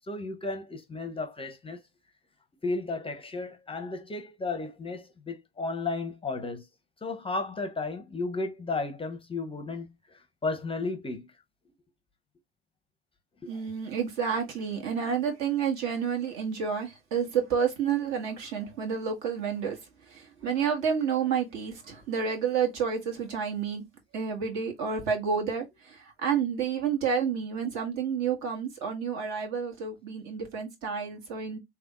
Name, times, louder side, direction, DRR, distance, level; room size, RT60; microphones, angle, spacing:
voice 1, 0.0-1.8 2.6-6.7 7.0-11.3 13.4-13.5, left 3 dB, 15° left, 0.6 m, -34 dB
voice 2, 13.5-19.8 20.1-23.9 24.1-31.6, right 7 dB, 60° right, 1.8 m, -30 dB
3.4 x 3.4 x 2.4 m
hypercardioid pair, 85°, 31 cm